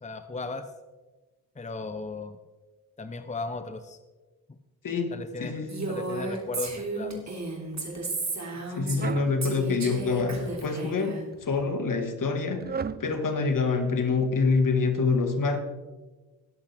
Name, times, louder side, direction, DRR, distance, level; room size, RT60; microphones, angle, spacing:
voice 1, 0.0-0.7 1.5-2.4 3.0-4.0 4.5-4.6 5.1-7.4, left 3 dB, 20° left, 9 dB, 0.8 m, -36 dB
voice 2, 5.4-5.9 8.8-12.7 13.0-15.6, left 4 dB, 60° left, 6 dB, 1.8 m, -26 dB
Female speech woman speaking, 5.7-9.1 9.4-11.2, right 3 dB, 50° right, 3.1 m, -33 dB
sound 1, 9.0-9.4 10.0-10.7 11.3-11.7 12.6-13.1, right 6 dB, 25° right, 0.5 m, -35 dB
19.5 x 8.1 x 3.5 m, 1.2 s
cardioid pair, 50°, 36 cm